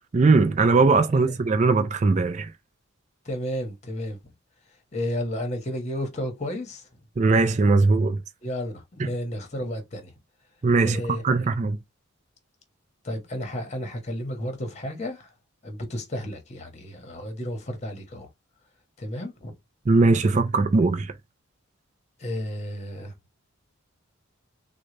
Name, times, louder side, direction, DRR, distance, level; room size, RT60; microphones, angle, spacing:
voice 1, 0.1-2.5 7.2-8.2 9.0-9.1 10.6-11.8 19.9-21.1, right 3 dB, 35° right, 0.4 m, -20 dB
voice 2, 3.2-4.2 4.9-6.9 8.4-10.1 10.8-11.2 13.0-15.3 15.6-18.3 19.0-19.5 22.2-23.1, equal, 30° left, 1.0 m, -32 dB
3.8 x 2.2 x 3.2 m
head